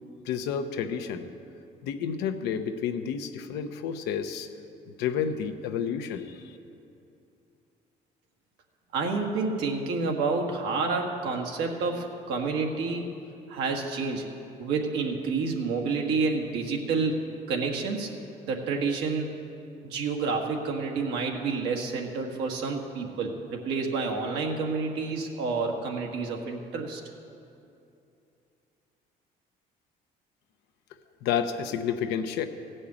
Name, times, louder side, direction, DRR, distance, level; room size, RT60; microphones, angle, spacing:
voice 1, 0.3-1.3 1.8-4.5 5.0-6.5 31.2-32.4, left 7 dB, 90° left, 8 dB, 0.8 m, -30 dB
voice 2, 8.9-13.1 13.5-14.3 14.6-17.2 17.5-18.1 18.4-19.3 19.8-27.0, right 4 dB, 85° right, 1 dB, 1.5 m, -29 dB
16.0 x 5.5 x 8.6 m, 2.7 s
cardioid pair, 110°, 17 cm